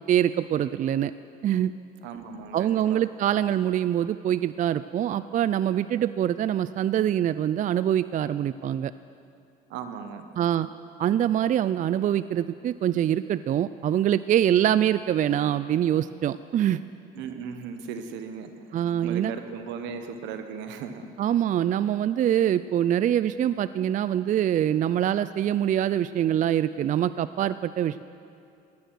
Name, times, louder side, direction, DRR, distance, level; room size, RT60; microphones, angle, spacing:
voice 1, 0.1-1.1 1.4-1.7 2.5-8.9 10.4-10.7 11.0-16.8 18.7-19.3 21.2-28.0, right 10 dB, 45° right, 15 dB, 0.4 m, -24 dB
voice 2, 2.0-3.0 9.7-10.3 17.2-21.1, right 6 dB, 80° right, 7 dB, 1.2 m, -37 dB
16.5 x 11.0 x 6.3 m, 2.5 s
supercardioid pair, 75°, 19 cm